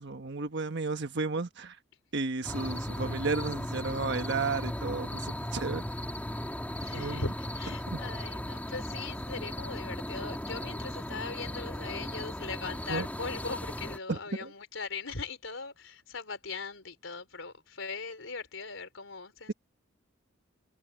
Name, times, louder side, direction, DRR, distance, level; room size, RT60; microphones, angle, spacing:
voice 1, 0.0-1.8 2.1-5.8 6.9-7.3 7.9-8.0 12.9-13.1 14.1-14.5, right 3 dB, 60° right, 1.3 m, -33 dB
sound 1, 2.4-14.0, left 1 dB, 10° left, 2.3 m, -37 dB
voice 2, 6.8-19.5, left 4 dB, 80° left, 4.0 m, -40 dB
head